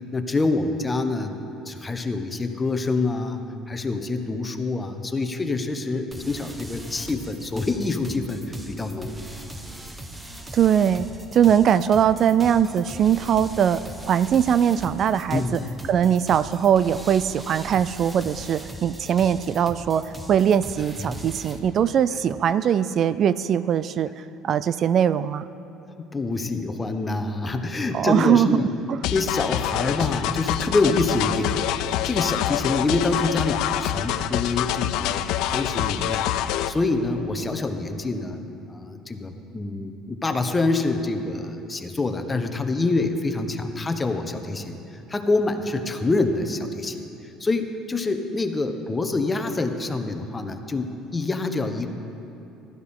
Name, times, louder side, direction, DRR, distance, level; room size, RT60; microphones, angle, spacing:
voice 1, 0.1-1.3 1.6-3.4 3.7-9.1 15.3-15.7 21.1-21.2 26.0-28.7 29.1-36.4 36.7-38.4 38.7-47.0 47.4-51.9, left 3 dB, 20° left, 6 dB, 1.1 m, -26 dB
sound 1, 6.1-21.6, right 1 dB, 15° right, 1.2 m, -40 dB
voice 2, 10.5-11.1 11.3-15.6 15.9-24.1 24.4-25.4 27.9-28.6 28.9-29.0, right 9 dB, 50° right, 15 dB, 0.3 m, -21 dB
sound 2, 29.0-36.7, left 12 dB, 70° left, 0.4 m, -26 dB
15.0 x 12.5 x 3.7 m, 2.8 s
supercardioid pair, 85°, 0 cm